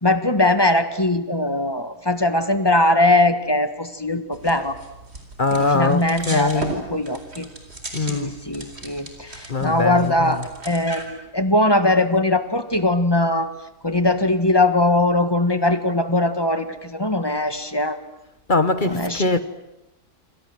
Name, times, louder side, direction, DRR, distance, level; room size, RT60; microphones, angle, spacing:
voice 1, 0.0-4.8 5.5-7.5 8.0-13.5 13.8-18.0 18.8-19.4, left 1 dB, 15° left, 1.5 m, -21 dB
sound 1, 4.3-11.1, right 2 dB, 40° right, 4.5 m, -37 dB
voice 2, 5.4-6.7 7.9-8.3 9.5-10.5 18.5-19.4, left 3 dB, 35° left, 1.1 m, -22 dB
28.5 x 25.0 x 7.8 m
omnidirectional pair, 1.6 m